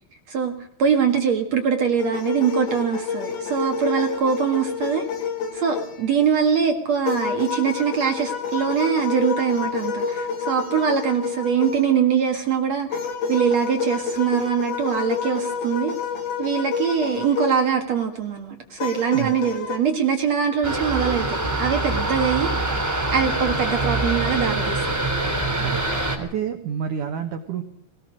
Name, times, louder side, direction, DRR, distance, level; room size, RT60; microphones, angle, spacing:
voice 1, 0.3-5.1 5.5-13.0 13.3-15.9 16.4-25.0, right 7 dB, 65° right, 3 dB, 1.7 m, -23 dB
sound 1, 2.0-6.3 7.1-12.0 12.9-17.7 18.8-19.8, left 6 dB, 55° left, 3.9 m, -29 dB
sound 2, 20.6-26.2, right 2 dB, 5° right, 1.4 m, -24 dB
voice 2, 26.2-27.6, right 8 dB, 80° right, 6 dB, 1.8 m, -29 dB
22.5 x 18.0 x 6.4 m, 0.66 s
omnidirectional pair, 5.9 m